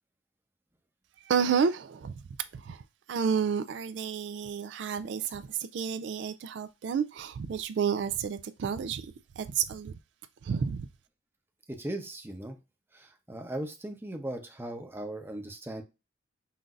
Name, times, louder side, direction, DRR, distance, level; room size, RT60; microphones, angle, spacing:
voice 1, 1.2-2.1 2.5-2.8 3.1-10.0 10.4-10.9, right 6 dB, 70° right, 0.3 m, -30 dB
voice 2, 11.7-12.6 12.9-15.8, right 1 dB, 10° right, 0.6 m, -38 dB
5.7 x 2.6 x 2.4 m
head